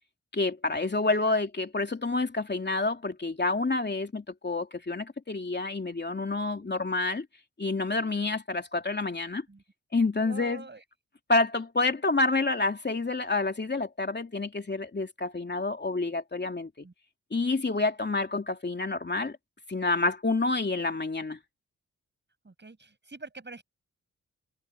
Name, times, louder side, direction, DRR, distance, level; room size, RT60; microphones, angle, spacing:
voice 1, 0.3-7.2 7.6-9.4 9.9-10.6 11.3-16.7 17.3-19.4 19.7-21.4, left 3 dB, 30° left, 2.9 m, -28 dB
voice 2, 1.0-1.4 6.6-6.9 9.5-9.6 10.2-10.8 16.8-16.9 22.4-23.6, right 3 dB, 35° right, 7.5 m, -46 dB
supercardioid pair, 50°, 33 cm